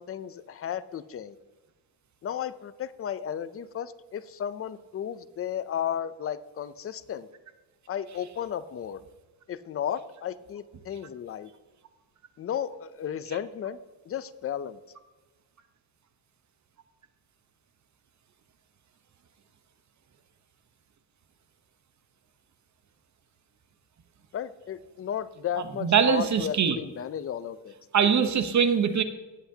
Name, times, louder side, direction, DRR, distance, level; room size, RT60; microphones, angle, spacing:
voice 1, 0.0-1.4 2.2-7.3 7.9-9.0 9.5-11.5 12.4-13.8 14.1-14.8 24.3-27.7, left 9 dB, 30° left, 14 dB, 0.5 m, -34 dB
voice 2, 25.8-26.8 27.9-29.0, right 7 dB, 35° right, 9 dB, 1.0 m, -22 dB
18.0 x 8.0 x 2.8 m, 1.2 s
cardioid pair, 130°, 47 cm